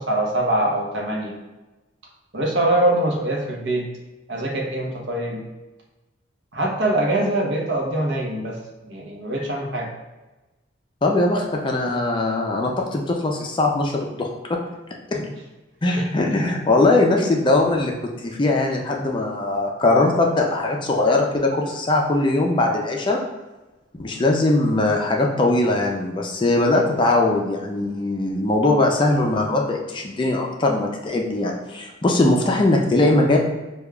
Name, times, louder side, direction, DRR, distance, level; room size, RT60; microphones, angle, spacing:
voice 1, 0.0-1.3 2.3-3.8 4.3-5.4 6.5-8.6 8.8-9.9 11.3-11.4 15.1-15.3 15.9-16.1, right 1 dB, 65° right, -1 dB, 0.8 m, -23 dB
voice 2, 11.0-14.6 15.1-15.2 15.8-17.9 18.2-23.2 23.9-33.4, left 2 dB, 25° left, 0 dB, 0.4 m, -20 dB
6.4 x 2.3 x 2.3 m, 1.1 s
head